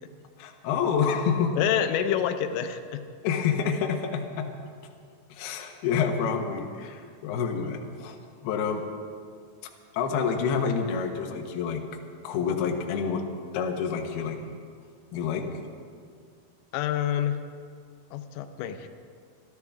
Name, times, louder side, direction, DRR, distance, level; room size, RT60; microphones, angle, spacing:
voice 1, 0.4-1.6 3.2-4.5 5.3-8.2 8.4-8.8 9.9-11.8 12.2-13.2 13.5-14.4 15.1-15.5, left 6 dB, 70° left, 3 dB, 2.7 m, -28 dB
voice 2, 1.6-3.0 16.7-17.4 18.1-18.9, left 9 dB, 90° left, 8 dB, 3.4 m, -27 dB
26.0 x 13.0 x 3.6 m, 2.1 s
omnidirectional pair, 5.7 m